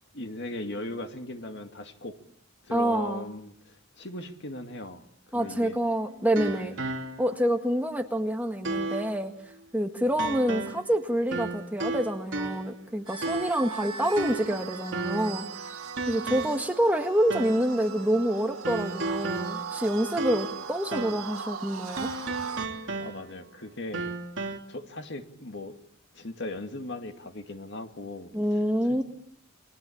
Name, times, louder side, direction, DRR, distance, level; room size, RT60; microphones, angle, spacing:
voice 1, 0.1-2.2 2.6-5.8 6.5-6.7 10.1-10.3 23.0-24.1 24.7-25.8 26.1-28.3, left 1 dB, 55° left, 2.3 m, -38 dB
voice 2, 2.7-3.2 5.3-6.8 7.2-9.3 9.7-15.7 16.1-22.1 28.3-29.0, equal, 10° right, 1.7 m, -27 dB
sound 1, 5.4-7.5 7.9-8.0 8.6-9.2 10.2-10.9 11.3-12.8 13.2-13.7 14.2-15.4 16.0-16.7 17.3-17.7 18.6-20.6 20.9-21.3 22.0-23.5 23.9-24.6, right 3 dB, 60° right, 3.2 m, -34 dB
sound 2, 13.1-22.7, right 6 dB, 90° right, 2.0 m, -39 dB
29.5 x 22.5 x 8.7 m
head